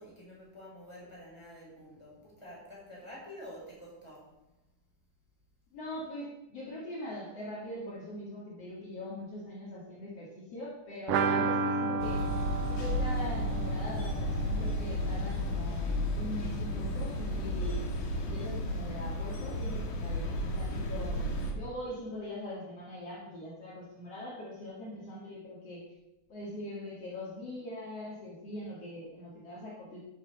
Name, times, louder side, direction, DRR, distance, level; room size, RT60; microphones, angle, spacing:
voice 1, 0.0-4.4, equal, 10° left, -5 dB, 4.8 m, -48 dB
voice 2, 5.7-12.2 12.6-17.8 18.2-21.2 21.5-25.8 26.3-30.0, left 1 dB, 50° left, -5 dB, 3.1 m, -42 dB
sound 1, 11.1-16.7 16.9-17.0 17.3-17.4, right 4 dB, 90° right, 1.3 m, -33 dB
sound 2, 12.0-21.5, left 1 dB, 75° left, 3.1 m, -33 dB
12.5 x 7.7 x 5.4 m, 0.90 s
omnidirectional pair, 3.7 m